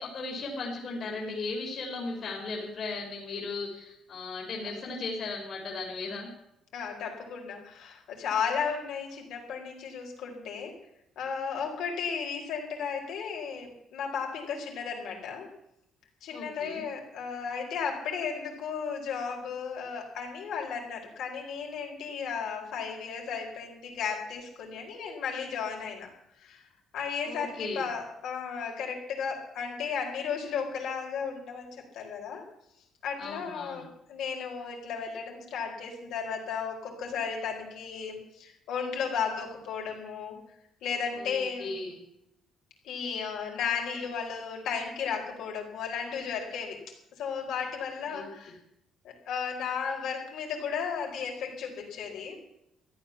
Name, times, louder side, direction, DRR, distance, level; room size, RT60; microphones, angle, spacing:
voice 1, 0.0-6.3 16.3-16.8 27.2-27.8 33.2-33.9 41.1-42.0 48.1-48.3, left 3 dB, 40° left, -1 dB, 3.3 m, -36 dB
voice 2, 6.7-10.7 11.2-15.5 16.2-26.1 26.4-26.7 26.9-31.7 31.9-32.4 33.0-40.4 40.8-41.8 42.8-46.8 47.2-48.5 49.0-52.4, left 6 dB, 70° left, 1 dB, 4.5 m, -34 dB
14.0 x 11.0 x 7.2 m, 0.81 s
cardioid pair, 165°, 0 cm